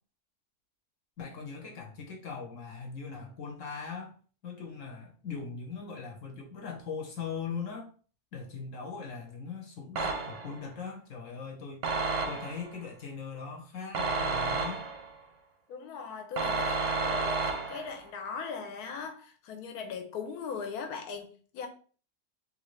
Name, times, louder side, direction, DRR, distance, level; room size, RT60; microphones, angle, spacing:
voice 1, 1.2-4.1 4.4-7.9 8.3-12.0 12.3-14.8, left 5 dB, 60° left, 1.1 m, -40 dB
sound 1, 10.0-10.6 11.8-12.7 13.9-15.1 16.4-18.0, right 3 dB, 65° right, 0.8 m, -31 dB
voice 2, 15.7-21.7, left 5 dB, 75° left, 1.2 m, -39 dB
3.4 x 2.6 x 3.1 m
omnidirectional pair, 1.7 m